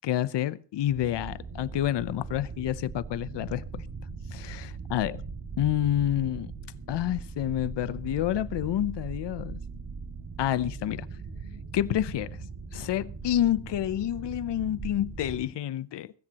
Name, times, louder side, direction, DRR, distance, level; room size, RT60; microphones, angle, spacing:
voice 1, 0.0-3.8 4.3-5.2 5.6-6.5 6.9-9.6 10.4-11.1 11.7-12.4 12.7-16.1, left 12 dB, 75° left, 0.7 m, -28 dB
sound 1, 0.8-15.5, right 4 dB, 55° right, 2.3 m, -40 dB
23.5 x 14.0 x 2.9 m
wide cardioid pair, 130°, 42 cm